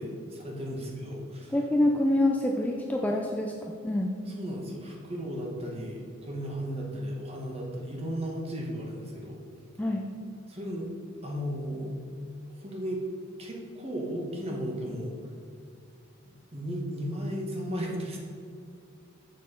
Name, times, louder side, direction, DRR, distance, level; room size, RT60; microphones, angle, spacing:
voice 1, 0.0-1.6 4.3-9.4 10.5-10.9 11.2-11.9 12.6-13.0 13.4-15.1 16.5-18.2, equal, 30° right, -1 dB, 1.3 m, -35 dB
voice 2, 1.5-4.1 9.8-10.1, left 1 dB, 5° left, 0 dB, 0.4 m, -26 dB
6.6 x 6.3 x 5.3 m, 2.4 s
head